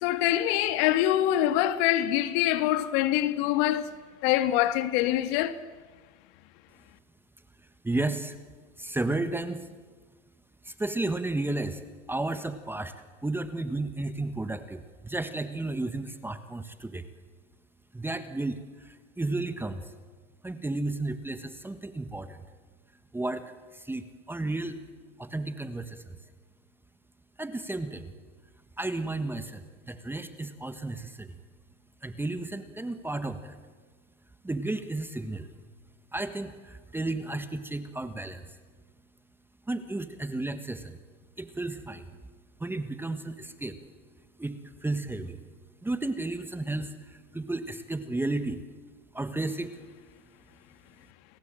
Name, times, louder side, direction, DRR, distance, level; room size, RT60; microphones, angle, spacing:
voice 1, 0.0-3.9 4.2-5.6, left 13 dB, 50° left, 1.9 m, -24 dB
voice 2, 7.8-8.4 8.8-9.7 10.6-11.8 12.1-12.9 13.2-17.0 17.9-19.9 20.4-22.4 23.1-24.8 25.2-26.2 27.4-28.1 28.8-31.4 32.0-33.6 34.4-35.5 36.1-38.6 39.7-41.0 41.4-42.2 42.6-43.8 44.4-45.4 45.8-48.6 49.1-49.7, right 2 dB, 5° right, 1.4 m, -33 dB
30.0 x 20.0 x 9.0 m
hypercardioid pair, 125°, 40 cm